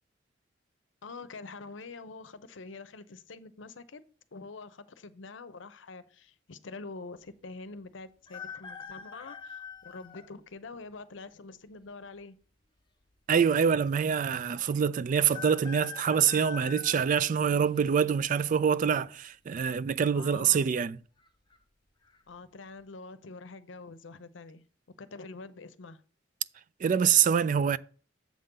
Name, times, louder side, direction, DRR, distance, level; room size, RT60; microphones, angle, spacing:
voice 1, 1.0-4.0 4.3-12.4 20.1-20.7 22.3-24.6 25.0-26.0, left 3 dB, 70° left, 0.7 m, -45 dB
sound 1, 8.3-10.3 11.0-11.1 12.2-12.8 13.1-13.2 13.4-13.5 15.3-17.9 18.4-18.8 19.9-20.3 20.6-20.7 21.2-21.6 22.0-22.2, left 6 dB, 25° left, 0.7 m, -44 dB
voice 2, 13.3-21.0 26.8-27.8, right 7 dB, 45° right, 0.3 m, -25 dB
7.5 x 3.8 x 6.6 m
head